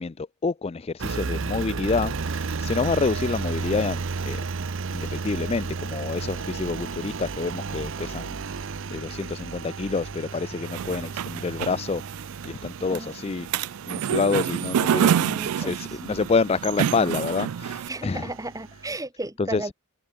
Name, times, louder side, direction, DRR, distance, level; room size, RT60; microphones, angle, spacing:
voice 1, 0.0-4.4 4.9-12.0 12.4-13.5 13.9-18.3 19.4-19.7, left 4 dB, 30° left, 0.4 m, -28 dB
Engine, 1.0-18.9, right 4 dB, 60° right, 0.7 m, -34 dB
sound 1, 10.6-17.9, right 8 dB, 90° right, 0.4 m, -27 dB
voice 2, 15.1-16.0 17.9-19.7, right 2 dB, 15° right, 2.2 m, -35 dB
head